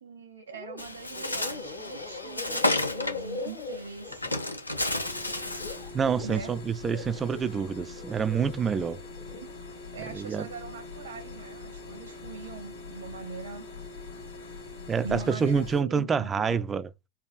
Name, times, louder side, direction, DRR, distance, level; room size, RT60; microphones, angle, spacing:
voice 1, 0.0-4.5 6.2-6.5 9.4-9.5 9.9-13.7 15.0-16.6, right 4 dB, 65° right, 0.7 m, -42 dB
sound 1, 0.5-0.9 1.1-6.4 6.9-8.6 9.0-9.4, left 4 dB, 40° left, 0.7 m, -41 dB
Bird, 0.8-5.9, left 2 dB, 85° left, 0.5 m, -32 dB
sound 2, 5.0-15.8, left 3 dB, 70° left, 2.0 m, -43 dB
voice 2, 5.9-9.0 10.1-10.5 14.9-16.9, right 6 dB, 20° right, 0.3 m, -27 dB
4.6 x 2.3 x 2.4 m
figure-of-eight pair, 90°, 0 cm